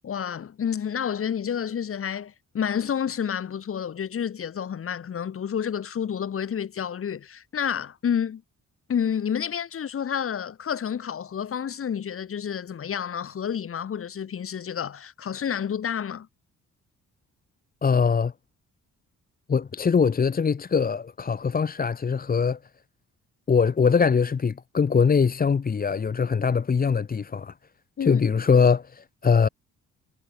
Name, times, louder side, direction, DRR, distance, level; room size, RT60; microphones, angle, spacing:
voice 1, 0.0-8.4 8.9-16.3 28.0-28.2, left 8 dB, 45° left, 6.9 m, -29 dB
voice 2, 17.8-18.3 19.5-22.6 23.5-27.5 28.0-29.5, left 6 dB, 30° left, 1.9 m, -22 dB
wide cardioid pair, 170°, 30 cm